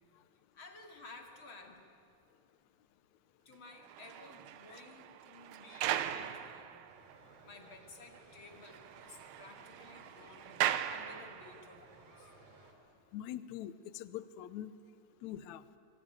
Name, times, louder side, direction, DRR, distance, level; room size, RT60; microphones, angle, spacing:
voice 1, 0.5-1.9 3.5-6.8 7.2-12.3, left 3 dB, 40° left, 4 dB, 2.7 m, -55 dB
sound 1, 3.7-7.2 7.7-7.8 8.1-8.2 8.5-11.8, right 11 dB, 85° right, 2.7 m, -39 dB
sound 2, 6.9-12.7, right 3 dB, 50° right, 4.8 m, -59 dB
voice 2, 13.1-14.7 15.2-15.6, left 11 dB, 75° left, 14 dB, 1.8 m, -43 dB
25.5 x 22.0 x 9.7 m, 2.6 s
omnidirectional pair, 4.1 m